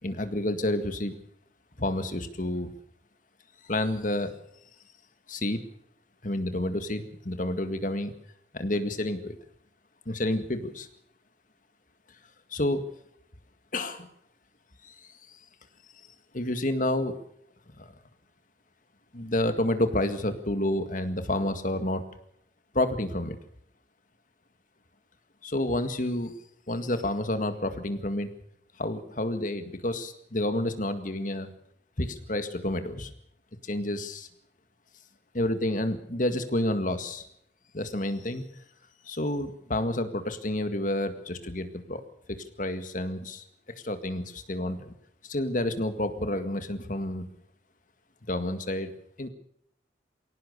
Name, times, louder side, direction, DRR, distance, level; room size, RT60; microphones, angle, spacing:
voice 1, 0.0-1.1 1.8-2.7 3.7-4.3 5.3-5.6 6.2-8.1 8.5-9.4 10.1-10.9 12.5-12.8 13.7-14.1 16.3-17.1 17.8-17.9 19.1-22.0 22.7-23.4 25.4-26.3 26.7-28.3 28.8-31.5 32.0-33.1 33.6-34.3 35.3-37.3 37.7-38.4 39.0-42.0 42.3-43.4 43.8-44.9 45.2-47.3 48.3-48.9 49.2-49.3, left 1 dB, 50° left, 9 dB, 1.9 m, -29 dB
22.0 x 18.0 x 6.8 m, 0.71 s
head